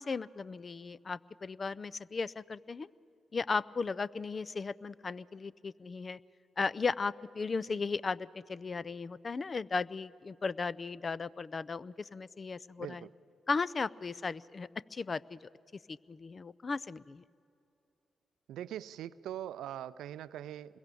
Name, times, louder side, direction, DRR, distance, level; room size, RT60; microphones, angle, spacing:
voice 1, 0.0-2.9 3.3-6.2 6.6-13.1 13.5-15.4 15.9-17.2, left 4 dB, 45° left, 20 dB, 0.5 m, -36 dB
voice 2, 12.8-13.1 18.5-20.8, right 11 dB, 75° right, 17 dB, 0.5 m, -42 dB
26.5 x 22.0 x 6.9 m, 2.7 s
hypercardioid pair, 40°, 0 cm